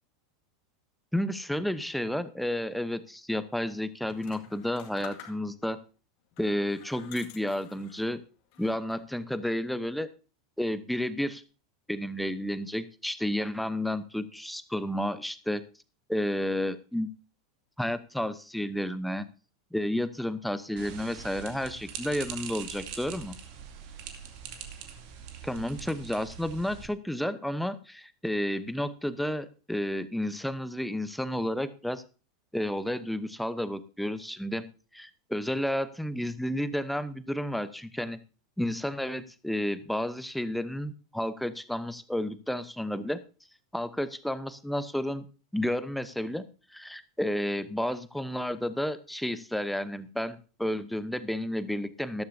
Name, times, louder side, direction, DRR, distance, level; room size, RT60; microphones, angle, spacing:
voice 1, 1.1-5.8 6.4-8.2 8.6-10.1 10.6-11.4 11.9-15.6 16.1-17.1 17.8-19.3 19.7-23.4 25.4-32.0 32.5-38.2 38.6-43.2 43.7-45.3 45.5-46.4 46.7-52.2, left 1 dB, ahead, 13 dB, 0.8 m, -31 dB
sound 1, 4.0-5.7 6.3-8.1 8.5-9.1, left 9 dB, 55° left, 2.0 m, -50 dB
sound 2, 20.8-26.9, right 8 dB, 55° right, 2.3 m, -43 dB
14.0 x 12.5 x 2.7 m, 0.34 s
hypercardioid pair, 90°, 2 cm